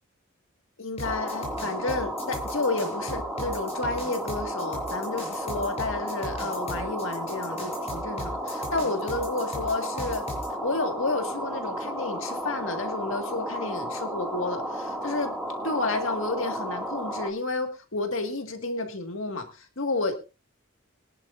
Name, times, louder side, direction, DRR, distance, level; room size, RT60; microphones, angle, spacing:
voice 1, 0.8-10.2 10.6-15.3 15.6-20.1, left 3 dB, 70° left, 5 dB, 1.8 m, -31 dB
sound 1, 1.0-10.5, equal, 30° left, 5.8 m, -38 dB
sound 2, 1.0-17.3, equal, ahead, 2.2 m, -33 dB
23.5 x 11.0 x 2.6 m, 0.29 s
head